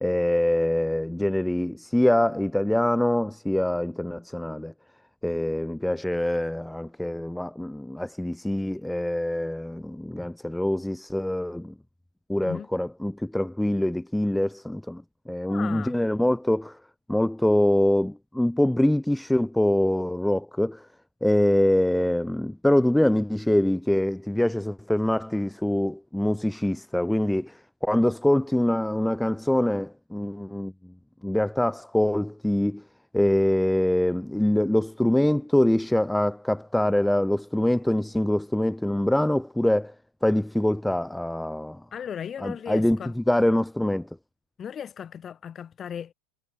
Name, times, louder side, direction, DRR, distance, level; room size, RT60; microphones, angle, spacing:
voice 1, 0.0-4.7 5.2-11.7 12.3-16.8 17.1-20.9 21.2-30.7 31.2-32.8 33.1-39.9 40.2-41.8 42.4-44.1, left 1 dB, 5° left, 0.3 m, -24 dB
voice 2, 15.4-16.0 41.9-43.1 44.6-46.1, left 8 dB, 30° left, 6.0 m, -36 dB
figure-of-eight pair, 85°, 0 cm